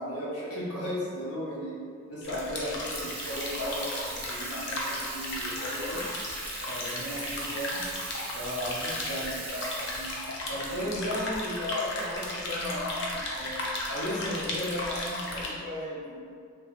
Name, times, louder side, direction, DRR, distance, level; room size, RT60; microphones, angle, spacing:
voice 1, 0.0-1.8 2.1-6.0 6.6-7.8 8.3-10.2 10.4-16.2, left 1 dB, 85° left, -7 dB, 0.9 m, -35 dB
sound 1, 2.2-15.5, left 2 dB, 55° left, 0.5 m, -35 dB
Water tap faucet / Sink (filling or washing), 2.6-12.2, right 3 dB, 25° right, 0.3 m, -41 dB
3.0 x 2.2 x 3.0 m, 2.1 s
head